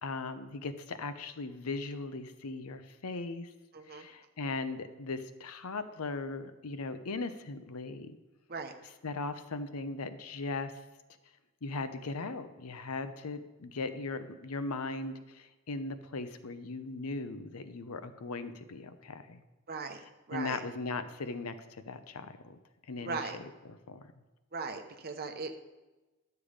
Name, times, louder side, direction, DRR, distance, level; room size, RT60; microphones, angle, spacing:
voice 1, 0.0-3.5 3.9-8.2 9.0-10.7 11.6-19.4 20.3-21.6 21.9-22.6 22.9-23.2 23.9-24.0, left 3 dB, 85° left, 11 dB, 0.7 m, -38 dB
voice 2, 3.7-4.1 8.5-8.7 19.7-20.6 23.0-23.4 24.5-25.5, right 4 dB, 45° right, 6 dB, 0.9 m, -38 dB
11.5 x 6.9 x 5.0 m, 1.1 s
head